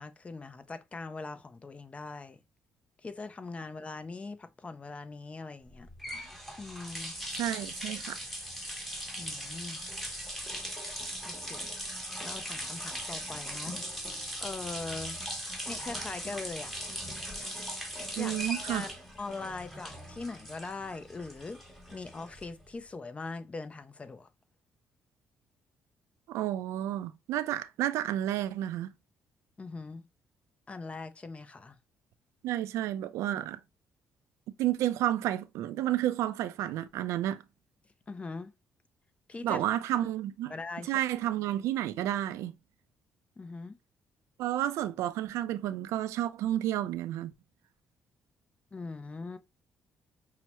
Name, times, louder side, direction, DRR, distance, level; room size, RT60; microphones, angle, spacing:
voice 1, 0.0-2.4 3.0-5.9 6.6-7.1 9.2-9.8 11.2-11.7 12.2-14.1 14.4-15.2 15.7-16.7 18.2-21.6 21.9-24.3 29.6-30.0 30.7-31.8 38.1-38.5 39.3-39.6 40.5-40.9 43.4-43.8 48.7-49.4, left 3 dB, 25° left, 0.5 m, -41 dB
sound 1, 5.7-22.7, equal, 5° left, 1.0 m, -39 dB
voice 2, 7.3-8.2 18.2-18.9 26.3-28.9 32.4-33.6 34.6-37.4 39.4-40.5 40.8-42.6 44.4-47.3, right 13 dB, 85° right, 0.4 m, -31 dB
5.6 x 2.1 x 2.9 m
cardioid pair, 90°, 5 cm